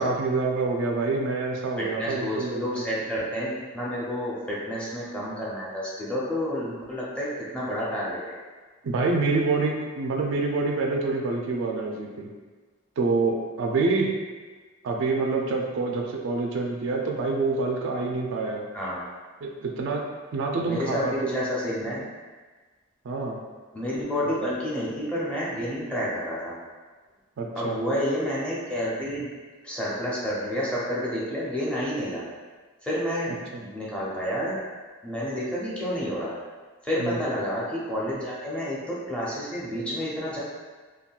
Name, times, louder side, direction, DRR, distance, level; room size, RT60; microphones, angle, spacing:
voice 1, 0.0-2.8 8.8-12.3 13.0-14.1 14.8-18.7 19.4-21.5 23.0-23.4 24.4-24.5 27.4-27.8 33.3-33.6 37.0-37.2, right 3 dB, 65° right, 1 dB, 0.4 m, -27 dB
voice 2, 1.8-8.4 18.7-19.0 20.6-22.0 23.7-26.6 27.6-29.3 29.6-32.2 32.8-34.6 35.0-36.3 36.8-40.4, equal, 5° left, -7 dB, 0.6 m, -30 dB
3.6 x 2.2 x 2.3 m, 1.4 s
head